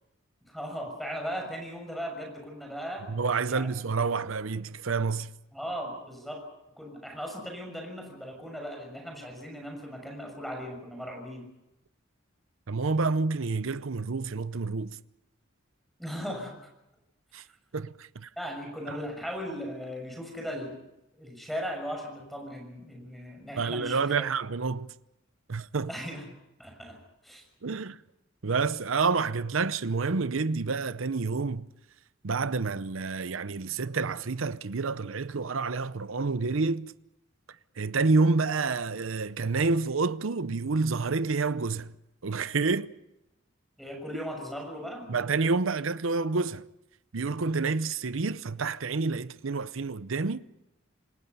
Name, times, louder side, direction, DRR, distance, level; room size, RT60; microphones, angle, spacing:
voice 1, 0.4-3.1 3.5-3.7 5.5-6.4 6.8-11.4 16.0-16.7 18.4-20.8 21.1-24.2 25.9-26.3 26.6-27.0 27.2-27.4 43.8-45.1, equal, ahead, 6.6 m, -38 dB
voice 2, 3.1-5.3 12.7-15.0 17.3-17.4 17.7-18.3 18.9-19.0 23.6-24.9 25.5-25.9 27.6-28.0 28.4-31.7 32.2-36.9 37.8-42.0 42.2-42.9 45.1-46.7 47.1-50.4, right 4 dB, 75° right, 0.7 m, -28 dB
27.5 x 20.5 x 5.5 m
head